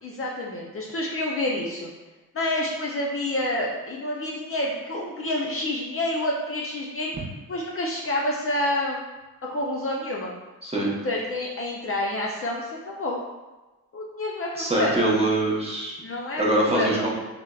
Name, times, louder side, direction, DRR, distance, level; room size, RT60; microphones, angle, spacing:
voice 1, 0.0-1.9 2.3-9.0 9.4-10.3 11.0-13.2 13.9-15.1 16.0-17.1, left 1 dB, 40° left, -3 dB, 0.4 m, -28 dB
voice 2, 14.6-16.0 16.4-17.1, right 1 dB, 15° right, -4 dB, 0.7 m, -23 dB
3.2 x 2.0 x 2.3 m, 1.2 s
cardioid pair, 70°, 37 cm